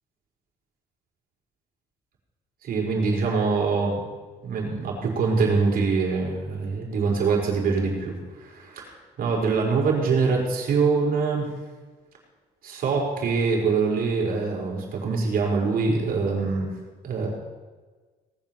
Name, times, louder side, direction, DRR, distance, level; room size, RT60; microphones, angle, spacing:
voice 1, 2.6-4.0 4.4-8.9 9.2-11.5 12.6-16.7 17.0-17.3, right 4 dB, 60° right, -1 dB, 4.9 m, -24 dB
18.5 x 7.7 x 7.1 m, 1.3 s
cardioid pair, 110°, 17 cm